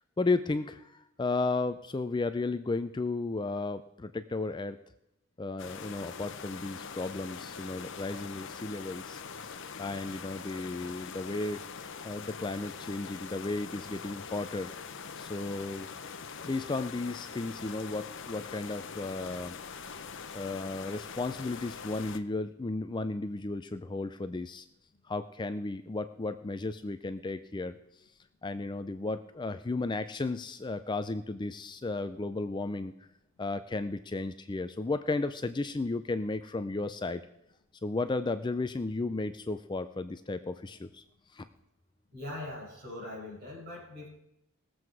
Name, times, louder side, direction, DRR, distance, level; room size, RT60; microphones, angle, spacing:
voice 1, 0.2-4.8 5.4-11.6 12.0-14.7 15.2-15.9 16.5-19.6 20.3-24.7 25.1-27.8 28.4-32.9 33.4-37.2 37.8-41.0 41.3-41.5, left 3 dB, 20° left, 10 dB, 0.4 m, -34 dB
sound 1, 5.6-22.2, left 6 dB, 55° left, 0.7 m, -43 dB
voice 2, 42.1-44.1, left 1 dB, 45° right, -5 dB, 6.0 m, -41 dB
19.5 x 7.7 x 4.7 m, 0.83 s
head